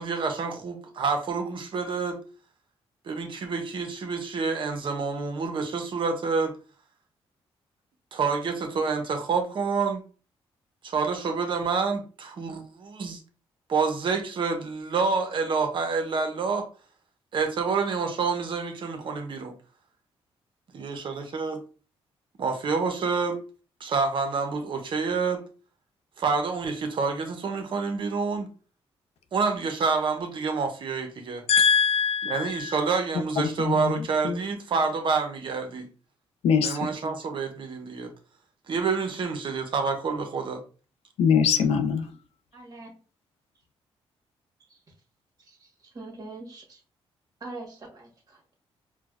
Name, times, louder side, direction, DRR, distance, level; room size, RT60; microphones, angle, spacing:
voice 1, 0.0-2.2 3.1-6.5 8.1-10.0 10.8-13.2 13.7-16.7 17.3-19.5 20.7-21.6 22.4-23.4 23.8-25.4 26.2-28.5 29.3-31.4 32.2-35.9 36.6-38.1 38.7-40.6, right 4 dB, 55° right, 0.7 m, -28 dB
voice 2, 31.5-32.7 33.6-33.8 34.2-34.4 36.4-36.8 41.2-42.1, left 7 dB, 85° left, 0.5 m, -22 dB
voice 3, 42.5-42.9 45.5-46.8 47.4-48.4, right 2 dB, 35° right, 1.2 m, -43 dB
4.5 x 2.1 x 2.4 m
cardioid pair, 95°, 10 cm